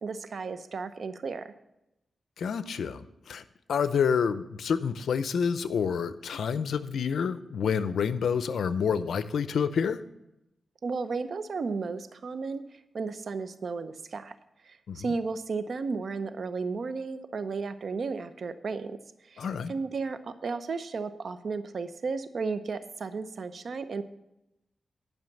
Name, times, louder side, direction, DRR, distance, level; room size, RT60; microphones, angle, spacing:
voice 1, 0.0-1.5 10.8-12.6 12.9-14.3 14.7-19.0 19.3-24.0, right 4 dB, 65° right, 11 dB, 0.7 m, -34 dB
voice 2, 2.4-3.4 3.7-10.0 14.9-15.1 19.4-19.7, left 6 dB, 85° left, 14 dB, 0.5 m, -28 dB
11.0 x 5.8 x 7.1 m, 0.89 s
cardioid pair, 75°, 0 cm